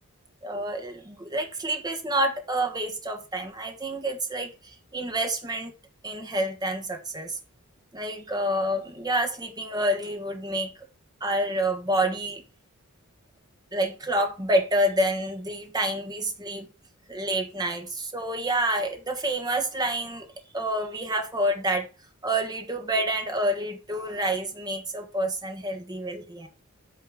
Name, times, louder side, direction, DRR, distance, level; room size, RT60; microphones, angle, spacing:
voice 1, 0.4-4.5 4.9-5.7 6.0-7.4 7.9-10.7 11.2-12.4 13.7-16.7 17.1-20.3 20.5-21.9 22.2-26.5, right 1 dB, 20° right, 1.4 m, -28 dB
8.4 x 4.4 x 6.2 m
head